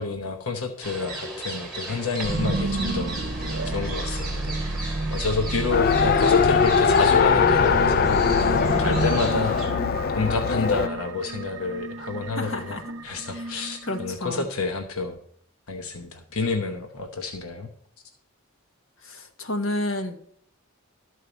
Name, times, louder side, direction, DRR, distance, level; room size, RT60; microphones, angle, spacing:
voice 1, 0.0-9.6 10.1-15.2 15.7-17.7, left 4 dB, 80° left, 4 dB, 0.9 m, -29 dB
sound 1, 0.8-9.7, right 2 dB, 5° right, 3.0 m, -37 dB
sound 2, 2.2-14.1, right 2 dB, 55° right, 0.9 m, -31 dB
Race car auto racing, 5.7-10.9, left 6 dB, 45° left, 0.3 m, -21 dB
voice 2, 12.4-12.8 13.3-13.5 13.8-14.5 19.0-20.1, left 1 dB, 60° left, 5 dB, 1.2 m, -30 dB
12.5 x 4.8 x 6.8 m, 0.64 s
head